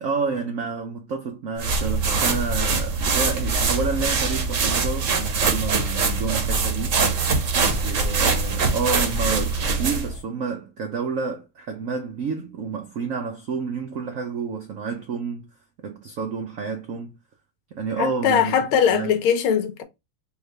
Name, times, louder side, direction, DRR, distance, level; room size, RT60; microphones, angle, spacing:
voice 1, 0.0-7.0 7.7-15.5 15.8-17.1 17.7-18.6 18.9-19.2, right 5 dB, 85° right, 0.7 m, -29 dB
sound 1, 1.6-10.2, right 4 dB, 55° right, 0.9 m, -23 dB
voice 2, 18.0-19.8, left 8 dB, 80° left, 1.7 m, -21 dB
4.7 x 2.4 x 3.2 m
omnidirectional pair, 2.3 m